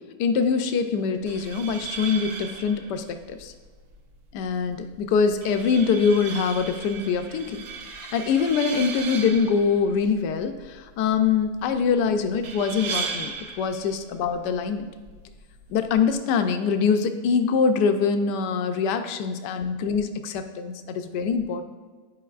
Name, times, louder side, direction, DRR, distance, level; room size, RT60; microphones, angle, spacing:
voice 1, 0.2-3.5 4.3-7.6 8.1-14.9 15.7-21.6, left 5 dB, 85° left, 7 dB, 1.2 m, -24 dB
sound 1, 1.2-16.2, right 5 dB, 65° right, 1.1 m, -38 dB
11.5 x 4.9 x 2.4 m, 1.4 s
omnidirectional pair, 1.8 m